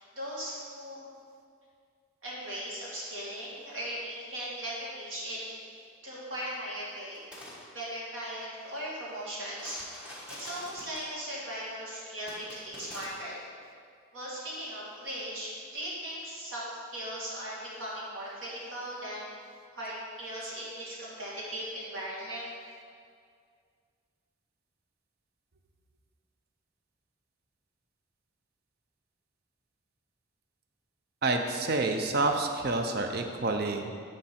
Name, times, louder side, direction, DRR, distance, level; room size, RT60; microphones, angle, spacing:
voice 1, 0.2-1.1 2.2-5.6 6.0-7.3 7.7-9.8 10.3-13.3 14.1-16.6 16.9-19.3 19.7-22.5, equal, 65° right, -6 dB, 2.2 m, -38 dB
sound 1, 7.1-7.6 9.5-11.1 12.3-13.1, left 1 dB, 5° right, 1.1 m, -45 dB
voice 2, 31.2-33.9, right 3 dB, 50° right, 5 dB, 0.5 m, -28 dB
9.9 x 5.1 x 4.3 m, 2.2 s
head